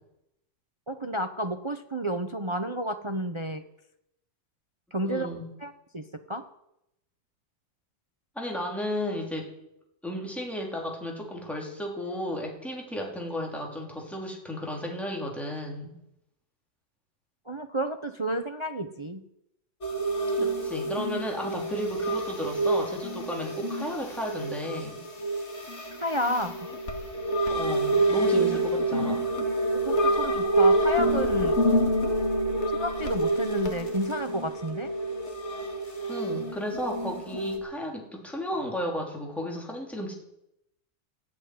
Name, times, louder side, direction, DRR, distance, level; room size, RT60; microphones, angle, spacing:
voice 1, 0.9-3.6 4.9-5.3 5.6-6.5 17.5-19.2 26.0-26.6 29.7-31.6 32.7-34.9, equal, 40° right, 8 dB, 0.4 m, -31 dB
voice 2, 5.0-5.4 8.4-9.5 10.0-15.9 20.4-25.0 27.5-29.2 36.1-40.1, left 1 dB, ahead, -1 dB, 3.6 m, -34 dB
sound 1, 19.8-37.6, right 1 dB, 40° left, 2.2 m, -27 dB
15.0 x 8.5 x 9.5 m, 0.82 s
omnidirectional pair, 2.0 m